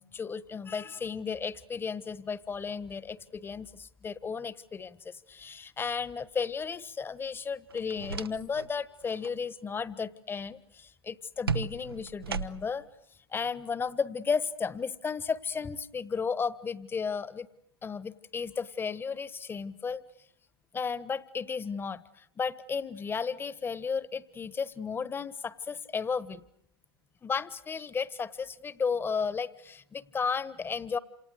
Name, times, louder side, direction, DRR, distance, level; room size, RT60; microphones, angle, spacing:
voice 1, 0.0-12.8 13.3-17.5 17.8-20.0 20.7-26.4 27.2-31.0, left 5 dB, 20° left, 18 dB, 1.2 m, -34 dB
sound 1, 7.7-8.7 9.0-9.4 11.5-12.9, right 5 dB, 80° right, 1.0 m, -35 dB
28.5 x 27.5 x 6.6 m, 0.74 s
figure-of-eight pair, 95°, 12 cm